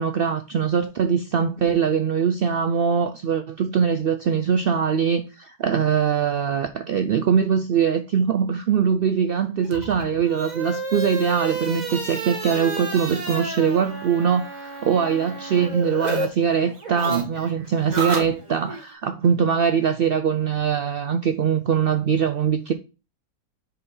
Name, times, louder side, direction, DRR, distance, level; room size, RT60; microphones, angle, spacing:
voice 1, 0.0-22.7, right 7 dB, 75° right, 0.5 m, -22 dB
sound 1, 9.7-16.3 16.5-18.8, right 4 dB, 30° right, 1.3 m, -30 dB
5.4 x 4.1 x 5.5 m
omnidirectional pair, 1.5 m